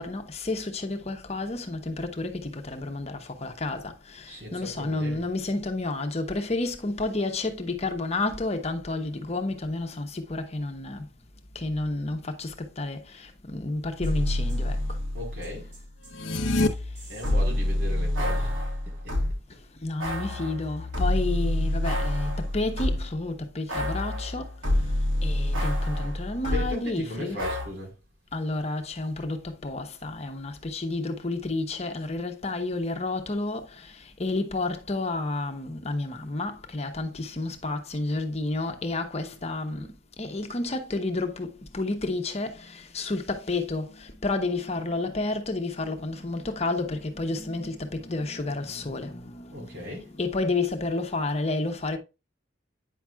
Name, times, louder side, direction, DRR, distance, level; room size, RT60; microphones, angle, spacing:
voice 1, 0.0-11.1 11.5-15.0 16.8-17.0 19.5-24.9 25.2-27.4 28.3-39.9 40.2-52.0, left 2 dB, 35° left, 1.0 m, -31 dB
voice 2, 4.3-5.3 15.1-15.7 17.1-19.1 26.5-27.9 49.5-50.1, left 1 dB, 60° right, 4.4 m, -37 dB
sound 1, 14.0-15.8 16.0-19.4 20.0-23.2 23.7-26.7 27.4-27.7, left 1 dB, 80° right, 3.5 m, -28 dB
sound 2, 16.1-16.7, left 2 dB, 75° left, 1.0 m, -25 dB
9.3 x 5.9 x 2.3 m
head